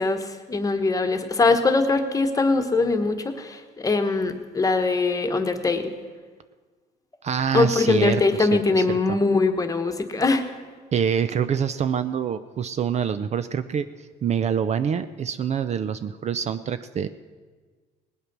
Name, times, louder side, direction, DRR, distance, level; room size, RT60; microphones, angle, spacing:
voice 1, 0.0-5.9 7.5-10.4, left 3 dB, 20° left, 7 dB, 1.2 m, -22 dB
voice 2, 7.2-9.2 10.9-17.1, right 7 dB, 40° right, 12 dB, 0.5 m, -26 dB
19.0 x 8.2 x 6.0 m, 1.4 s
cardioid pair, 110°, 17 cm